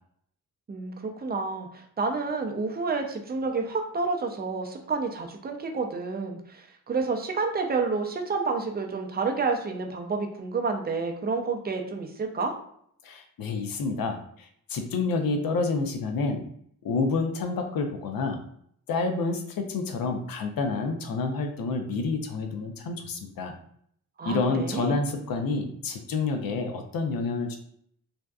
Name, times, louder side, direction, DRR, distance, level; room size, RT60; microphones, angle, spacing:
voice 1, 0.7-12.5 24.2-25.0, right 4 dB, 30° right, 3 dB, 0.4 m, -29 dB
voice 2, 13.0-14.2 14.7-16.4 16.8-18.4 18.9-23.5 24.2-27.6, left 3 dB, 75° left, 5 dB, 0.6 m, -28 dB
2.6 x 2.3 x 2.3 m, 0.66 s
cardioid pair, 75°, 35 cm